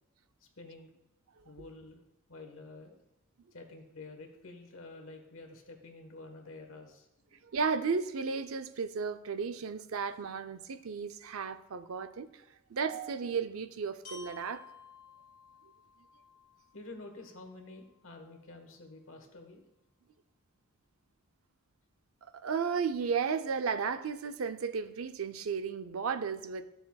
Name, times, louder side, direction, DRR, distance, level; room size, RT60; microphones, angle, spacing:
voice 1, 0.6-0.9 1.4-2.0 2.3-3.0 3.5-7.4 16.7-19.6, left 2 dB, 75° left, 1.3 m, -49 dB
voice 2, 7.5-12.3 12.7-14.6 22.4-26.7, right 5 dB, 85° right, 0.5 m, -34 dB
Glockenspiel, 14.0-18.0, left 4 dB, 45° left, 2.6 m, -54 dB
12.5 x 6.6 x 2.3 m
head